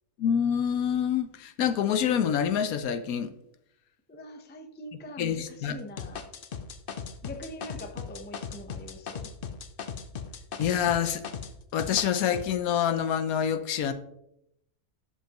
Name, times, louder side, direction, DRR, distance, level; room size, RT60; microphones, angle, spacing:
voice 1, 0.2-3.3 4.9-5.8 10.6-11.2 11.7-13.9, left 8 dB, 75° left, 1.1 m, -27 dB
voice 2, 4.1-6.2 7.2-9.3, left 1 dB, 10° left, 0.5 m, -43 dB
sound 1, 6.0-11.5 11.8-12.4, left 6 dB, 55° left, 0.6 m, -38 dB
12.0 x 5.5 x 3.0 m
omnidirectional pair, 1.6 m